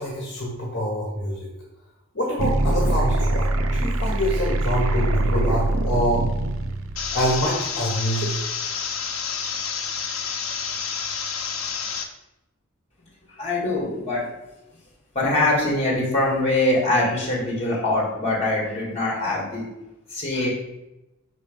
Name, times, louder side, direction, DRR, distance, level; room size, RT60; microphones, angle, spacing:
voice 1, 0.0-1.5 2.1-6.3 7.1-8.3, equal, 55° left, -4 dB, 1.5 m, -25 dB
sound 1, 2.4-7.4, right 1 dB, 90° right, 0.6 m, -23 dB
sound 2, 7.0-12.0, left 6 dB, 90° left, 0.8 m, -29 dB
voice 2, 13.4-14.2 15.1-19.6 20.1-20.5, left 2 dB, 30° left, -3 dB, 2.4 m, -23 dB
6.1 x 4.2 x 5.2 m, 0.95 s
head